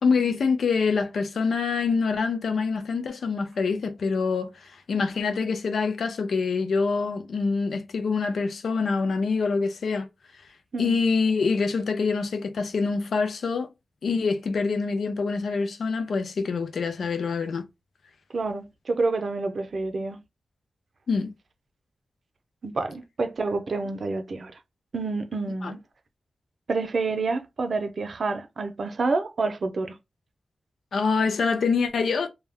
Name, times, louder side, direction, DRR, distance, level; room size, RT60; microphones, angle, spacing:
voice 1, 0.0-10.1 10.8-13.7 14.0-17.7 21.1-21.3 25.6-25.7 30.9-32.3, left 4 dB, 80° left, 0.4 m, -25 dB
voice 2, 18.3-20.2 22.6-24.5 24.9-25.8 26.7-29.9, right 3 dB, 65° right, 0.5 m, -28 dB
2.2 x 2.1 x 3.4 m
cardioid pair, 40°, 0 cm